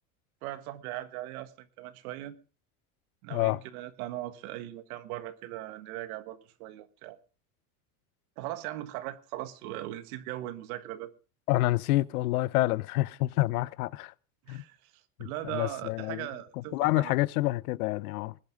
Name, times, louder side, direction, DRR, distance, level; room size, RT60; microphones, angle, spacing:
voice 1, 0.4-2.4 3.2-7.2 8.4-11.1 14.4-14.9 15.2-17.1, right 14 dB, 75° right, 1.7 m, -39 dB
voice 2, 11.5-14.1 14.5-14.6 15.2-16.3 16.6-18.4, left 18 dB, 80° left, 0.8 m, -28 dB
20.5 x 10.5 x 3.8 m
supercardioid pair, 100°, 44 cm